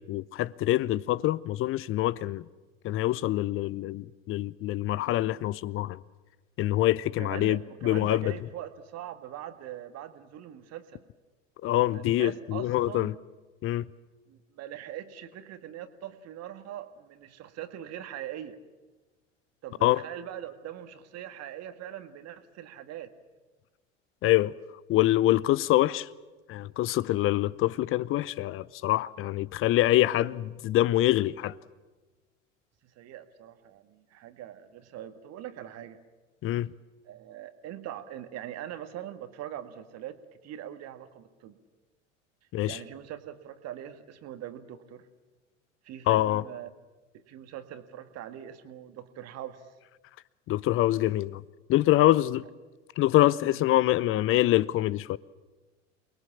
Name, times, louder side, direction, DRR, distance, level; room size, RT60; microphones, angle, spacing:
voice 1, 0.0-2.5 2.8-6.0 6.6-8.3 11.6-13.1 13.6-13.9 19.8-20.0 24.2-24.5 24.9-26.1 26.5-31.5 36.4-36.7 42.5-42.8 46.1-46.4 50.5-51.4 51.7-52.5 53.0-55.2, left 15 dB, 35° left, 0.7 m, -25 dB
voice 2, 7.2-11.0 11.9-13.2 14.3-18.6 19.6-23.1 32.8-36.0 37.0-41.6 42.6-45.1 45.8-46.7 47.1-49.7, right 11 dB, 40° right, 1.8 m, -42 dB
28.5 x 20.5 x 7.3 m
figure-of-eight pair, 75°, 37 cm